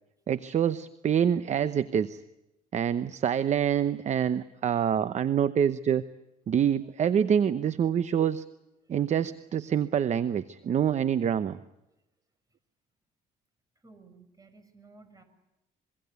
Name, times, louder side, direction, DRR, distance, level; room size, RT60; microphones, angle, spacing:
voice 1, 0.3-2.2 2.7-6.0 6.5-8.4 8.9-11.6, right 8 dB, 45° right, 13 dB, 0.9 m, -26 dB
voice 2, 13.8-15.2, right 3 dB, 20° right, 9 dB, 6.3 m, -55 dB
25.5 x 23.5 x 8.3 m, 0.93 s
cardioid pair, 110°, 17 cm